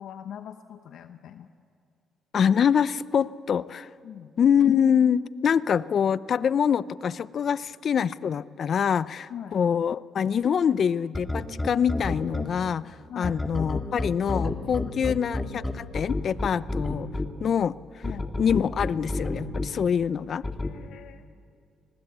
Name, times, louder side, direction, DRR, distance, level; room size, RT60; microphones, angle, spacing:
voice 1, 0.0-1.5 4.0-4.3 9.3-9.6 13.1-13.4 14.8-14.9 18.0-18.3 20.4-21.2, left 9 dB, 75° left, 8 dB, 0.9 m, -41 dB
voice 2, 2.3-3.9 4.4-17.1 17.4-17.8 18.4-20.4, left 7 dB, 55° left, 17 dB, 0.6 m, -25 dB
sound 1, 11.1-12.5 13.2-17.3 18.0-19.7 20.4-20.7, left 2 dB, 15° left, 2.2 m, -28 dB
24.0 x 20.0 x 8.1 m, 2.4 s
cardioid pair, 90°, 0 cm